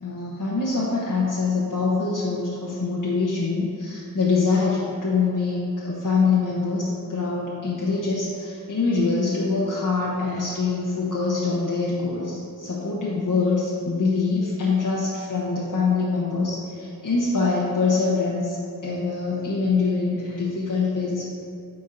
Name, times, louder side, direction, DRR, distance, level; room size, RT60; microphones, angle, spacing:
voice 1, 0.0-18.6 18.8-21.2, left 4 dB, 55° left, -6 dB, 1.0 m, -24 dB
9.7 x 4.5 x 2.6 m, 2.6 s
wide cardioid pair, 55°, 37 cm